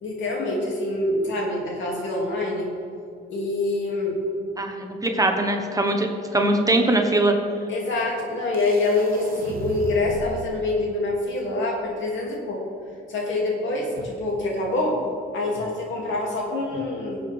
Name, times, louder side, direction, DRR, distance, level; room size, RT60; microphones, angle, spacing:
voice 1, 0.0-2.7 3.3-4.2 7.7-12.6 13.1-15.0 15.3-17.2, left 2 dB, 70° left, -2 dB, 2.7 m, -25 dB
voice 2, 4.6-6.1 6.3-7.3, right 2 dB, 15° right, 3 dB, 1.2 m, -21 dB
sound 1, 8.5-10.5, right 4 dB, 50° right, 1.0 m, -36 dB
16.5 x 7.9 x 3.6 m, 2.5 s
cardioid pair, 90°, 20 cm